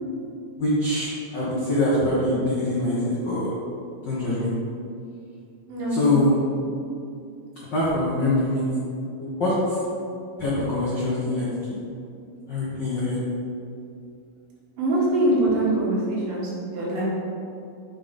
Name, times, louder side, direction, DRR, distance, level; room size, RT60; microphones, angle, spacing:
voice 1, 0.6-3.0 3.2-3.5 4.0-4.5 5.9-6.3 7.7-8.6 9.2-9.8 10.4-11.5 12.5-13.2, left 1 dB, 70° left, -8 dB, 1.0 m, -23 dB
voice 2, 5.7-6.2 14.8-17.0, right 1 dB, 80° right, -5 dB, 3.2 m, -23 dB
7.6 x 5.3 x 3.7 m, 2.5 s
omnidirectional pair, 3.9 m